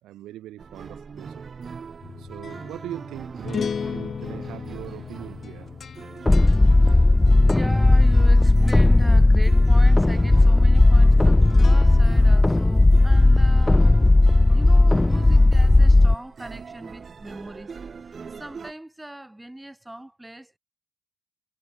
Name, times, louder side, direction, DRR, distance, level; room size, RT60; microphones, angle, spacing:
voice 1, 0.0-1.4 2.2-5.7, right 14 dB, 85° right, 5.0 m, -41 dB
sound 1, 0.6-18.7, right 5 dB, 40° right, 2.4 m, -41 dB
sound 2, 2.0-8.4 8.7-9.1 11.4-12.4, left 6 dB, 45° left, 1.1 m, -36 dB
sound 3, 6.3-16.1, left 2 dB, 15° left, 0.3 m, -15 dB
voice 2, 7.5-13.9 14.3-17.7 18.0-20.6, right 1 dB, 10° right, 7.6 m, -39 dB
cardioid pair, 90°, 0 cm